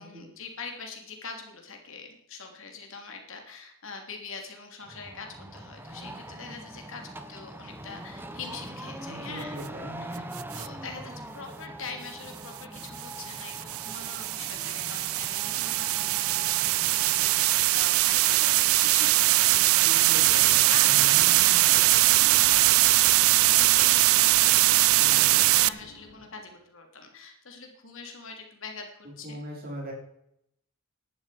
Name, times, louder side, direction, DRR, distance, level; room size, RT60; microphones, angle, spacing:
voice 1, 0.0-7.0 7.3-9.6 10.0-10.3 10.5-29.4, left 4 dB, 60° left, 3 dB, 3.0 m, -43 dB
sound 1, 4.8-17.7, right 1 dB, 10° right, 1.1 m, -43 dB
voice 2, 9.1-10.3 19.8-21.8 25.0-25.6 29.0-29.9, equal, 40° right, -1 dB, 5.4 m, -41 dB
sound 2, 10.4-10.7 12.8-25.7, right 17 dB, 70° right, 0.4 m, -21 dB
sound 3, 20.3-26.6, left 1 dB, 85° left, 2.8 m, -50 dB
17.0 x 12.0 x 5.1 m, 0.75 s
head